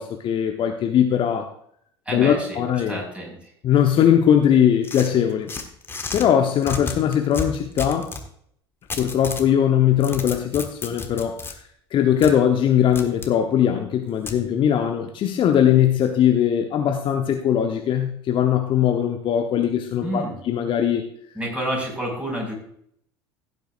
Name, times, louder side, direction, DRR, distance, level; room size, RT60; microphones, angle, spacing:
voice 1, 0.0-1.5 2.1-3.0 3.6-5.5 6.1-8.1 9.0-11.5 11.9-21.0, left 9 dB, 35° left, 4 dB, 1.0 m, -20 dB
voice 2, 2.1-3.4 20.0-20.4 21.4-22.5, right 1 dB, 10° right, -1 dB, 5.4 m, -29 dB
sound 1, 4.8-6.3 6.6-8.3 8.9-9.5 9.9-11.5 12.2-12.3 12.9-13.3 14.3-14.4, left 4 dB, 15° left, 1.5 m, -32 dB
16.5 x 9.4 x 2.5 m, 0.67 s
figure-of-eight pair, 70°, 14 cm